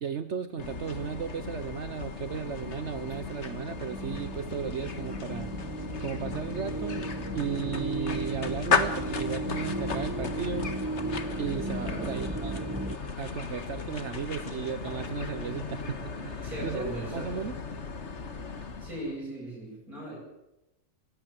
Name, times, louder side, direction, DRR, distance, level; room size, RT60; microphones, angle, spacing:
voice 1, 0.0-5.6 6.0-7.1 7.3-10.7 11.4-12.7 13.2-17.6, right 7 dB, 55° right, 11 dB, 1.2 m, -35 dB
sound 1, 0.6-19.2, left 5 dB, 50° left, 1.8 m, -35 dB
sound 2, 2.9-13.0, right 2 dB, 15° right, 0.7 m, -36 dB
voice 2, 11.8-12.1 16.4-17.3 18.8-20.2, right 1 dB, 85° right, -4 dB, 8.4 m, -38 dB
22.0 x 16.5 x 7.7 m, 0.93 s
omnidirectional pair, 1.5 m